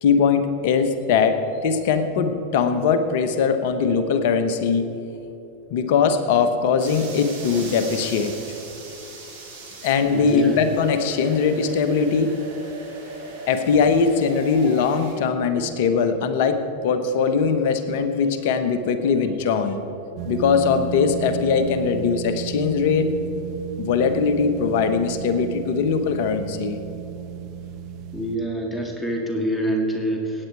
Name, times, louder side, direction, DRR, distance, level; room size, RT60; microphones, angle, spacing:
voice 1, 0.0-4.9 5.7-8.4 9.8-12.3 13.5-19.8 20.3-23.1 23.8-26.8, left 5 dB, 60° left, 9 dB, 1.1 m, -21 dB
sound 1, 6.8-15.1, right 2 dB, 70° right, 3.6 m, -38 dB
voice 2, 10.1-10.6 28.1-30.5, right 1 dB, 10° left, 1 dB, 2.2 m, -26 dB
sound 2, 20.2-28.4, right 9 dB, 50° right, 0.8 m, -34 dB
16.5 x 9.4 x 4.7 m, 2.9 s
hypercardioid pair, 95°, 0 cm